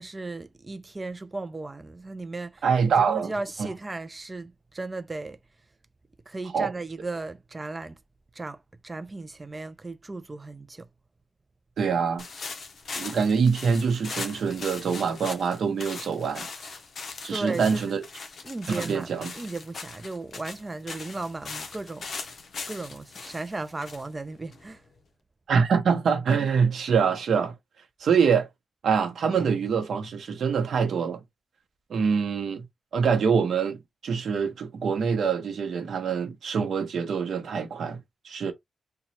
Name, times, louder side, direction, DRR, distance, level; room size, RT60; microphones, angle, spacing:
voice 1, 0.0-5.4 6.3-8.0 8.4-10.9 17.3-18.0 18.4-19.1 19.3-22.1 22.7-24.8, right 2 dB, 20° right, 0.4 m, -36 dB
voice 2, 2.6-3.3 3.6-3.7 6.5-6.7 11.8-12.3 12.9-16.5 17.2-18.0 18.7-19.3 25.5-27.5 28.0-28.5 28.8-31.2 31.9-32.7 32.9-38.0 38.2-38.5, right 6 dB, 65° right, 0.8 m, -25 dB
sound 1, 12.2-25.0, left 4 dB, 55° left, 0.7 m, -40 dB
2.9 x 2.3 x 4.2 m
wide cardioid pair, 145°, 0 cm